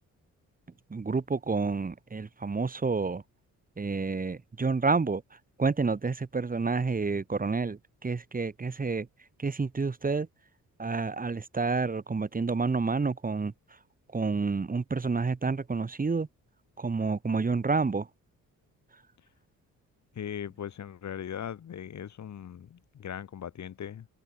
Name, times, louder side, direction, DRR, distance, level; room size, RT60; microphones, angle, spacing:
voice 1, 0.9-3.2 3.8-5.2 5.6-9.1 9.4-10.3 10.8-13.5 14.1-16.3 16.8-18.1, right 4 dB, 25° right, 2.1 m, -29 dB
voice 2, 20.1-24.1, left 9 dB, 60° left, 3.2 m, -39 dB
cardioid pair, 90°, 32 cm